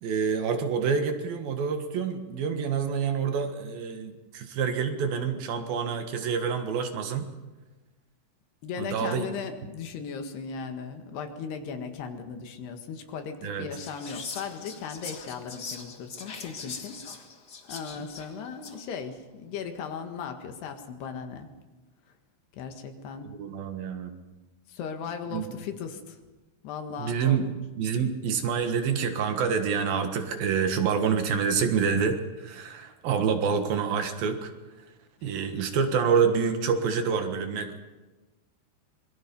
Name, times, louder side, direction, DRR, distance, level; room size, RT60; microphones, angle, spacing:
voice 1, 0.0-7.3 8.8-9.3 13.4-13.7 23.3-24.1 25.3-25.5 27.0-27.5 27.8-34.5 35.2-37.8, right 6 dB, 65° right, 6 dB, 3.2 m, -27 dB
voice 2, 8.6-17.3 17.7-21.5 22.5-23.3 24.7-26.2 26.6-27.4 35.2-35.4, left 6 dB, 80° left, 6 dB, 3.8 m, -37 dB
Whispering, 13.7-18.9, left 5 dB, 50° left, 1.2 m, -41 dB
25.5 x 22.5 x 5.4 m, 1.2 s
omnidirectional pair, 4.7 m